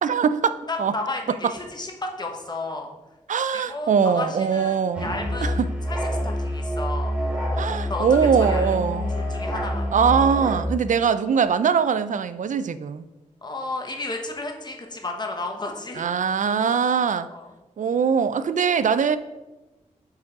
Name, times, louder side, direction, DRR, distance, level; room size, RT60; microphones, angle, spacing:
voice 1, 0.0-0.9 1.4-1.5 3.3-5.1 5.4-5.7 7.6-9.1 9.9-13.1 16.0-17.3 17.8-19.2, right 6 dB, 75° right, 13 dB, 0.4 m, -22 dB
voice 2, 0.7-2.9 3.7-5.6 5.9-6.0 6.2-7.1 7.9-8.1 8.4-8.7 9.1-9.9 13.4-16.0 17.3-17.5, left 2 dB, 35° left, 2 dB, 1.1 m, -32 dB
Musical instrument, 4.9-10.7, equal, 5° right, 2.5 m, -27 dB
7.4 x 4.8 x 4.7 m, 1.1 s
wide cardioid pair, 130°, 13 cm